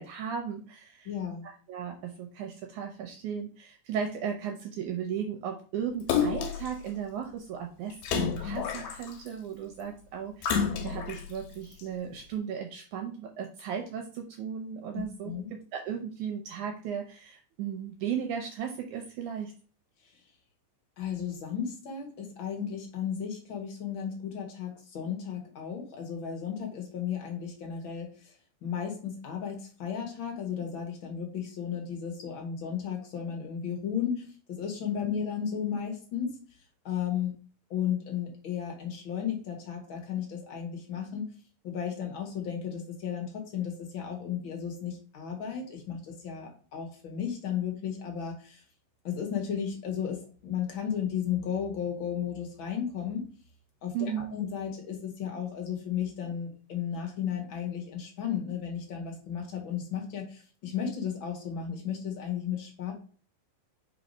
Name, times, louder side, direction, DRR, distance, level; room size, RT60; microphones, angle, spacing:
voice 1, 0.0-1.1 1.7-19.5 53.9-54.3, right 8 dB, 75° right, 3 dB, 1.9 m, -36 dB
voice 2, 1.0-1.4 14.9-15.5 21.0-28.3 28.6-36.4 36.8-37.3 37.7-41.3 41.6-48.6 49.0-53.3 53.8-62.9, left 8 dB, 55° left, 2 dB, 1.5 m, -34 dB
Splash splatter, 6.1-6.7 8.0-9.3 10.4-11.2 11.8-11.9, left 7 dB, 90° left, 2.7 m, -29 dB
4.8 x 4.0 x 5.2 m, 0.40 s
omnidirectional pair, 4.0 m